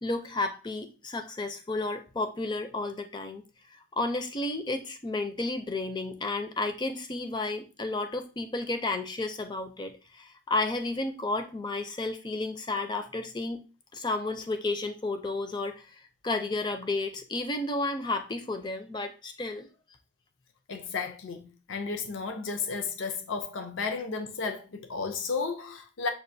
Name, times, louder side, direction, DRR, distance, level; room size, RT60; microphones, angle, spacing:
voice 1, 0.0-3.4 3.7-13.6 13.9-19.7, left 2 dB, 20° left, 0.4 m, -32 dB
voice 2, 20.7-26.1, left 4 dB, 80° left, 0.5 m, -33 dB
6.3 x 2.4 x 2.6 m
head